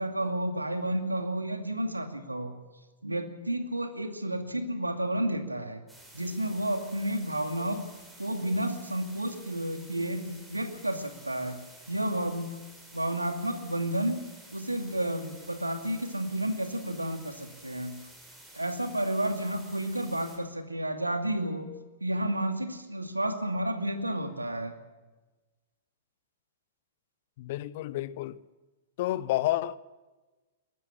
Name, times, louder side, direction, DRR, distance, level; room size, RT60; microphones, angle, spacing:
voice 1, 0.0-2.5 3.0-5.8 6.1-7.9 8.2-11.6 11.9-12.6 12.9-14.2 14.5-18.0 18.5-21.7 22.0-24.8, right 1 dB, 85° right, 2.4 m, -31 dB
sound 1, 5.9-20.4, right 1 dB, 10° right, 7.9 m, -52 dB
voice 2, 27.4-28.4 29.0-29.8, left 15 dB, 50° left, 0.9 m, -30 dB
22.5 x 20.0 x 7.3 m
figure-of-eight pair, 105°, 0 cm